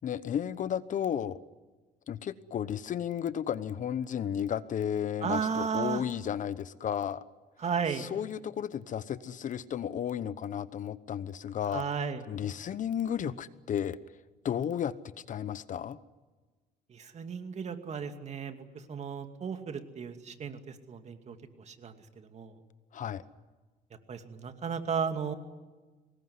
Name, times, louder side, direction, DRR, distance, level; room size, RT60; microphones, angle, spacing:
voice 1, 0.0-1.4 2.1-7.2 7.9-11.9 12.3-14.0 14.4-16.0 22.9-23.2, left 9 dB, 50° left, 15 dB, 1.0 m, -33 dB
voice 2, 5.2-6.0 7.6-8.1 11.7-12.2 16.9-22.6 24.1-25.3, right 6 dB, 40° right, 7 dB, 2.5 m, -34 dB
24.5 x 20.5 x 9.7 m, 1.3 s
cardioid pair, 110°, 17 cm